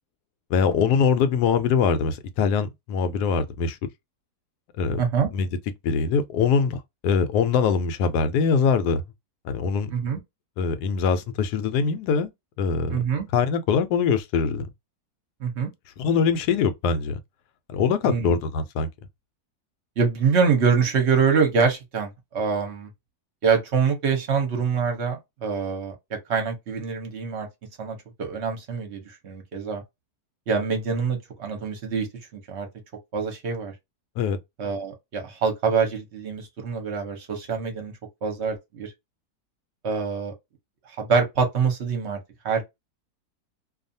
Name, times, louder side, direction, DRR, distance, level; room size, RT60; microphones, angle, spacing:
voice 1, 0.5-3.8 4.8-5.0 5.3-5.5 5.8-9.0 9.4-9.9 10.6-12.3 12.6-13.0 13.3-14.7 16.0-17.2 17.7-18.9 34.2-34.4, left 6 dB, 80° left, 1.1 m, -23 dB
voice 2, 5.0-5.3 9.9-10.2 12.9-13.3 15.4-15.7 18.0-18.3 20.0-22.1 22.3-22.9 23.4-27.5 27.8-29.8 30.5-32.1 32.3-32.7 33.1-33.7 34.6-37.9 38.2-38.9 39.8-40.3 41.0-42.2 42.4-42.6, right 5 dB, 50° right, 0.9 m, -25 dB
2.6 x 2.3 x 2.6 m
omnidirectional pair, 1.7 m